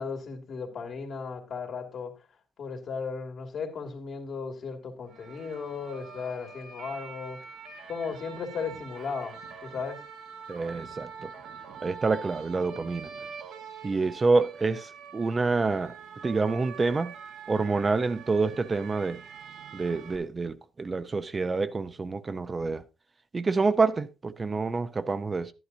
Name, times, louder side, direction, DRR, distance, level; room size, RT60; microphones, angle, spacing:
voice 1, 0.0-2.1 2.6-7.4 7.9-9.4 9.6-10.0, left 5 dB, 60° left, 2.5 m, -36 dB
sound 1, 5.1-20.2, right 6 dB, 85° right, 1.6 m, -44 dB
voice 2, 10.5-11.3 11.8-13.1 13.8-15.9 16.2-17.1 17.5-19.2 19.7-22.8 23.3-25.5, right 4 dB, 30° right, 0.6 m, -27 dB
11.5 x 11.0 x 2.6 m
cardioid pair, 90°, 0 cm